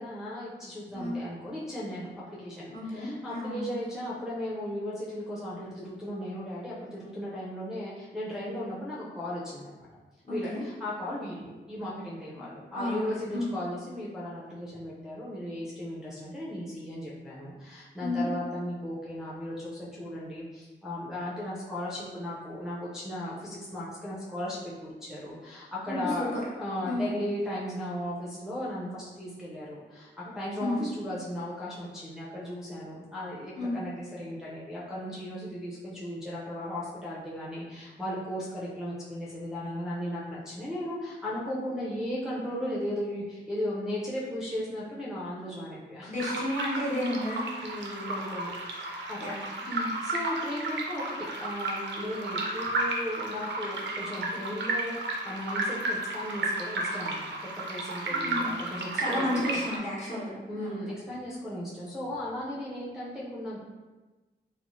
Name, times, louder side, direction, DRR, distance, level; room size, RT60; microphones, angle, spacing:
voice 1, 0.0-9.9 10.3-46.1 47.6-49.3 49.6-57.3 57.7-59.6 60.5-63.6, left 1 dB, 5° right, -8 dB, 0.5 m, -36 dB
voice 2, 2.7-3.7 10.2-10.6 12.7-13.1 13.3-13.5 18.0-18.2 25.9-26.4 26.8-27.0 30.6-30.8 33.6-33.8 46.1-47.4 49.2-49.4 49.7-49.9 58.1-58.5 59.0-60.8, left 1 dB, 40° left, -7 dB, 1.0 m, -32 dB
sound 1, 46.2-59.8, right 2 dB, 85° right, 0.4 m, -33 dB
2.6 x 2.1 x 3.0 m, 1.2 s
wide cardioid pair, 95°, 18 cm